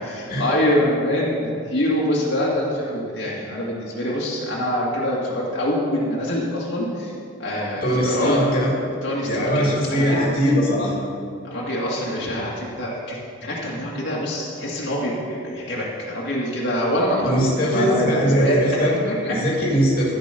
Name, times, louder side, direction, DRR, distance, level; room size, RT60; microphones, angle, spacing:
voice 1, 0.0-7.1 7.4-8.5 9.0-9.7 10.0-10.3 11.5-18.6 18.9-19.3, left 1 dB, 65° left, -5 dB, 2.0 m, -25 dB
voice 2, 7.8-8.7 9.3-10.9 17.2-19.0 19.3-20.1, equal, 45° left, -4 dB, 2.1 m, -20 dB
13.5 x 5.3 x 6.8 m, 2.4 s
head